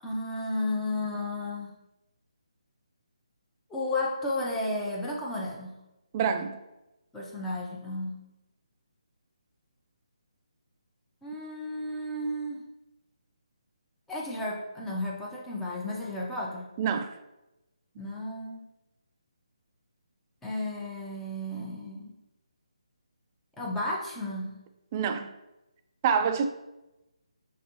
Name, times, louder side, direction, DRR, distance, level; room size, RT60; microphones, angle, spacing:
voice 1, 0.0-1.7 3.7-5.7 7.1-8.1 11.2-12.6 14.1-16.7 18.0-18.6 20.4-22.1 23.6-24.5, left 1 dB, 5° left, 0.7 m, -33 dB
voice 2, 6.1-6.6 16.8-17.1 24.9-25.3 26.0-26.5, right 7 dB, 25° right, 0.3 m, -26 dB
6.1 x 2.6 x 2.9 m
figure-of-eight pair, 150°, 4 cm